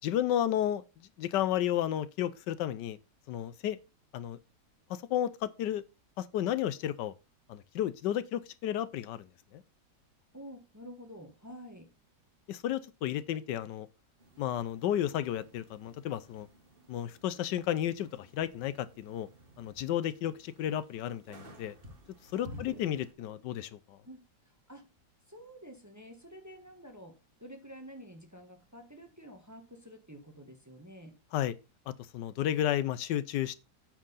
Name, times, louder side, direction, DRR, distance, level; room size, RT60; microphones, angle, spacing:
voice 1, 0.0-0.8 1.2-3.0 3.3-3.8 4.1-4.4 5.1-5.8 6.2-7.1 7.5-9.3 9.5-9.6 12.5-13.9 14.4-16.5 16.9-19.3 19.6-21.7 22.3-24.0 31.3-31.5 32.1-33.5, left 11 dB, 80° left, 1.3 m, -32 dB
voice 2, 10.3-11.9 22.3-23.5 24.0-24.2 24.5-24.8 25.3-27.1 27.4-31.2, equal, 10° right, 1.2 m, -49 dB
sound 1, 14.2-23.1, equal, 30° right, 1.8 m, -54 dB
8.8 x 4.7 x 5.5 m
omnidirectional pair, 1.9 m